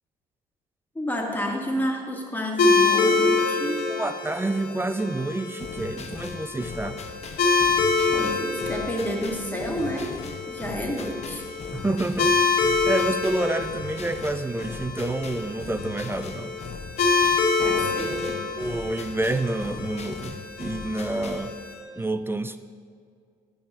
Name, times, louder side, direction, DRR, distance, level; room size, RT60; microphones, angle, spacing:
voice 1, 1.0-3.8 8.1-10.1 10.5-11.4 17.6-18.4, equal, 10° left, -1 dB, 1.9 m, -30 dB
sound 1, 2.6-21.7, left 4 dB, 55° left, 1.8 m, -26 dB
voice 2, 3.9-7.0 11.7-16.5 18.5-21.6 22.0-22.6, right 2 dB, 10° right, 10 dB, 0.4 m, -28 dB
sound 2, 5.6-21.5, left 5 dB, 35° left, 0.7 m, -40 dB
11.5 x 8.4 x 2.8 m, 2.2 s
figure-of-eight pair, 45°, 20 cm